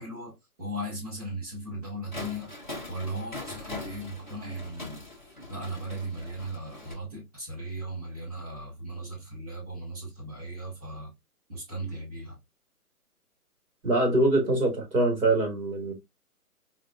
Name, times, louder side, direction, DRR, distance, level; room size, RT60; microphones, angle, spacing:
voice 1, 0.0-2.5 2.9-11.1 11.5-12.4, right 1 dB, 25° right, 2.0 m, -37 dB
sound 1, 2.1-6.9, left 2 dB, 30° left, 0.6 m, -41 dB
voice 2, 13.8-15.9, right 2 dB, 65° right, 1.9 m, -24 dB
4.1 x 2.6 x 2.3 m
hypercardioid pair, 175°, 46 cm